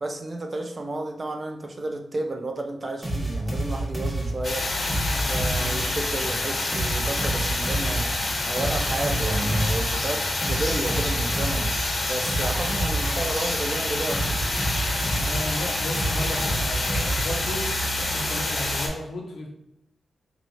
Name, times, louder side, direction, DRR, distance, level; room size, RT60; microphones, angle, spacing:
voice 1, 0.0-4.7 5.3-11.7 12.1-14.4, right 2 dB, 40° right, 3 dB, 0.5 m, -31 dB
sound 1, 3.0-6.1 6.7-13.5 14.1-17.6, right 1 dB, 20° right, 1.3 m, -29 dB
sound 2, 4.4-18.9, left 2 dB, 55° left, 1.0 m, -27 dB
voice 2, 15.1-19.5, left 1 dB, 85° left, -1 dB, 0.9 m, -34 dB
4.5 x 3.0 x 2.6 m, 0.84 s
cardioid pair, 90°, 0 cm